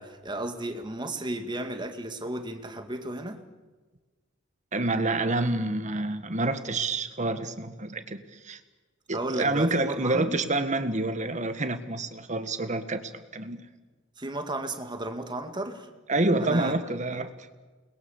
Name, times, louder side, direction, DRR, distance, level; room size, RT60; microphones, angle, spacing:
voice 1, 0.0-3.4 9.1-10.4 14.2-15.9 16.4-16.7, right 1 dB, 25° right, 6 dB, 2.0 m, -34 dB
voice 2, 4.7-8.6 9.1-13.6 16.1-17.3, right 2 dB, 40° right, 10 dB, 1.6 m, -28 dB
29.0 x 21.0 x 7.2 m, 1.3 s
head